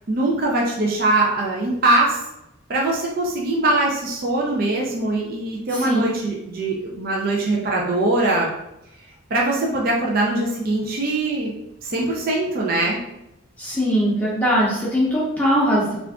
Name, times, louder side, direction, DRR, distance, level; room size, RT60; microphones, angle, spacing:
voice 1, 0.1-2.2 2.7-8.5 9.3-11.5 11.8-13.0, right 2 dB, 45° right, -2 dB, 0.5 m, -22 dB
voice 2, 5.7-6.0 13.6-16.0, equal, 5° left, -8 dB, 0.7 m, -20 dB
3.4 x 2.5 x 3.5 m, 0.87 s
head